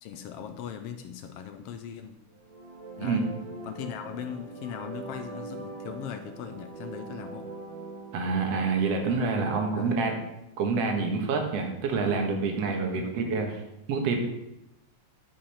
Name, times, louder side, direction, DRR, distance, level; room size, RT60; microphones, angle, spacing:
voice 1, 0.0-2.2 3.0-3.3 3.6-7.5 9.7-10.1 12.9-13.1, left 8 dB, 75° left, 8 dB, 1.4 m, -39 dB
sound 1, 2.3-10.2, right 3 dB, 35° right, 2.4 m, -42 dB
voice 2, 8.1-10.2 10.6-13.6 13.9-14.2, right 4 dB, 60° right, 3 dB, 2.3 m, -27 dB
10.5 x 5.2 x 5.7 m, 0.86 s
omnidirectional pair, 3.3 m